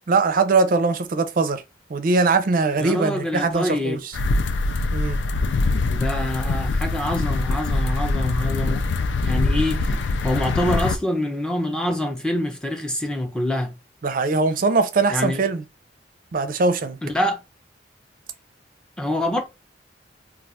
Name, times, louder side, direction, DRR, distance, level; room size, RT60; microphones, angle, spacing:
voice 1, 0.1-1.6 1.9-4.2 4.9-5.2 14.0-15.6 16.3-17.0, right 4 dB, 50° right, 0.5 m, -21 dB
voice 2, 2.8-4.0 5.9-8.9 9.2-13.7 15.1-15.4 17.0-17.4 19.0-19.4, left 1 dB, 5° left, 0.6 m, -25 dB
sound 1, 4.1-11.0, left 3 dB, 90° left, 0.4 m, -23 dB
2.4 x 2.3 x 4.0 m
head